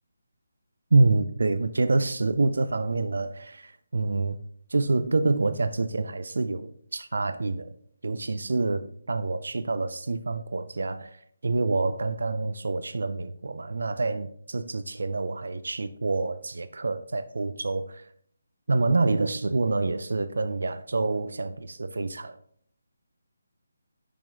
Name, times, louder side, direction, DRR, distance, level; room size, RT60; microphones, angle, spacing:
voice 1, 0.9-4.4 4.7-7.7 8.0-11.2 11.4-18.0 18.7-22.4, right 3 dB, 75° right, 0.4 m, -27 dB
7.1 x 5.1 x 3.5 m
figure-of-eight pair, 160°, 0 cm